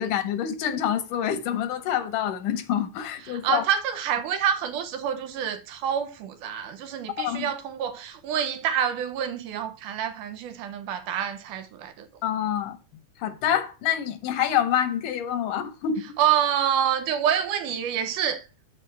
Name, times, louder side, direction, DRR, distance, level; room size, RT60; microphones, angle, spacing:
voice 1, 0.0-3.6 7.2-7.5 12.2-12.8 13.2-16.2, left 9 dB, 85° left, 2.5 m, -27 dB
voice 2, 3.3-12.1 16.2-18.5, right 9 dB, 85° right, 2.5 m, -27 dB
12.0 x 4.4 x 3.3 m
omnidirectional pair, 3.5 m